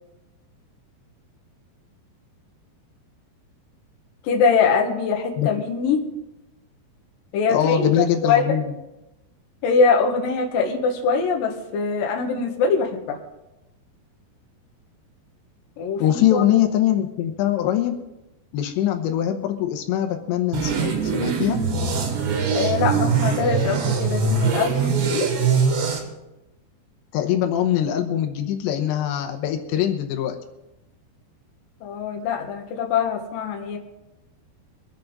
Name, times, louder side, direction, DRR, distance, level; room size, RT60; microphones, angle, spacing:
voice 1, 4.2-6.0 7.3-7.9 8.2-8.4 9.6-13.2 15.8-16.4 22.5-25.3 31.8-33.8, left 5 dB, 60° left, 1 dB, 2.9 m, -22 dB
voice 2, 7.5-8.6 16.0-18.0 18.5-21.6 27.1-30.4, left 11 dB, 85° left, 5 dB, 3.2 m, -22 dB
sound 1, 20.5-26.0, right 5 dB, 80° right, 4.1 m, -22 dB
24.0 x 8.4 x 3.9 m, 0.96 s
omnidirectional pair, 5.0 m